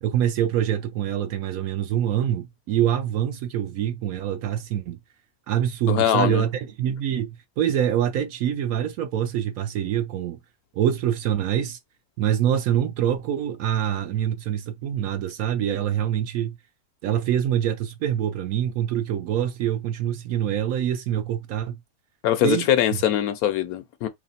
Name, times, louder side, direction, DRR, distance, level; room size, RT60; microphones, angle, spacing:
voice 1, 0.0-5.0 5.5-10.4 10.7-11.8 12.2-16.6 17.0-21.8 22.4-22.7, right 10 dB, 70° right, 0.9 m, -25 dB
voice 2, 5.9-6.4 22.2-24.1, left 11 dB, 70° left, 1.0 m, -22 dB
3.1 x 3.0 x 4.1 m
omnidirectional pair, 1.7 m